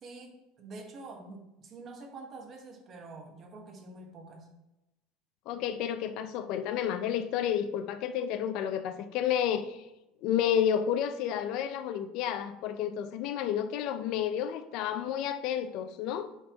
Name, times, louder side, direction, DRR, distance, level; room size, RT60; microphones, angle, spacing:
voice 1, 0.0-4.5, right 3 dB, 30° right, 2 dB, 1.1 m, -46 dB
voice 2, 5.5-9.9 10.2-16.3, left 9 dB, 55° left, 10 dB, 0.5 m, -31 dB
8.9 x 3.6 x 3.0 m, 0.96 s
cardioid pair, 150°, 0 cm